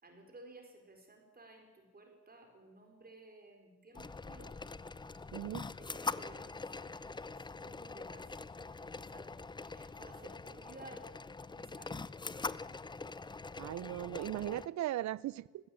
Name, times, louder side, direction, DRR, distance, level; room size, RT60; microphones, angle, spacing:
voice 1, 0.0-4.6 5.8-6.9 7.3-8.3 8.8-9.3 9.7-11.0 11.5-12.0, right 2 dB, 30° right, 3 dB, 4.7 m, -56 dB
sound 1, 3.9-14.7, left 3 dB, 15° left, 0.6 m, -43 dB
voice 2, 5.3-5.7 13.6-15.7, right 13 dB, 70° right, 22 dB, 0.7 m, -38 dB
19.0 x 15.5 x 8.7 m, 1.3 s
cardioid pair, 90°, 30 cm